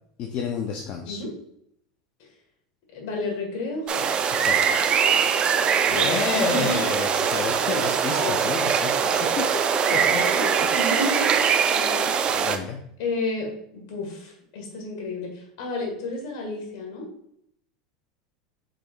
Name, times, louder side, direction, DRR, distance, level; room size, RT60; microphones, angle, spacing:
voice 1, 0.2-1.2 4.4-4.8 5.2-5.3 5.9-9.4 9.9-10.2 10.6-10.7 12.3-12.8, left 5 dB, 50° left, 2 dB, 0.6 m, -30 dB
voice 2, 2.9-4.1 5.9-6.8 8.2-8.4 9.9-11.4 11.7-12.2 13.0-17.0, left 2 dB, 65° left, 0 dB, 1.7 m, -31 dB
sound 1, 3.9-12.6, right 7 dB, 35° right, 0.4 m, -22 dB
5.0 x 4.3 x 2.4 m, 0.71 s
hypercardioid pair, 105°, 3 cm